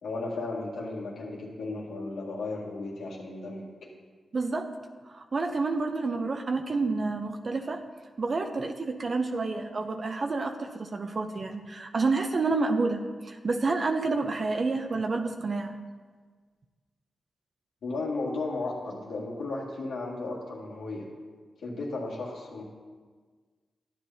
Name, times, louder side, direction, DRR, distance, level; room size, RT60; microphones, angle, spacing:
voice 1, 0.0-3.7 17.8-21.1 21.6-22.6, left 3 dB, 80° left, -3 dB, 2.0 m, -34 dB
voice 2, 4.3-4.7 5.1-7.8 8.2-15.7, right 3 dB, 55° right, 5 dB, 0.6 m, -29 dB
12.0 x 9.0 x 2.8 m, 1.5 s
supercardioid pair, 45°, 0 cm